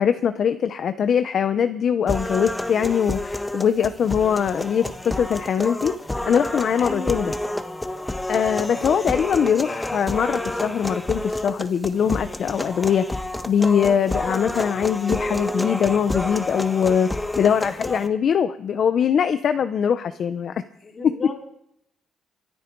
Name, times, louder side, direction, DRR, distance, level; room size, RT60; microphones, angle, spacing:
voice 1, 0.0-5.9 6.2-7.3 8.3-13.1 13.4-20.5 21.0-21.1, left 7 dB, 60° left, 10 dB, 0.8 m, -22 dB
sound 1, 2.1-18.1, left 1 dB, 10° left, 1.3 m, -29 dB
voice 2, 6.8-7.3 20.8-21.5, left 3 dB, 40° left, 2 dB, 3.4 m, -34 dB
24.0 x 9.1 x 4.7 m, 0.76 s
cardioid pair, 90°, 0 cm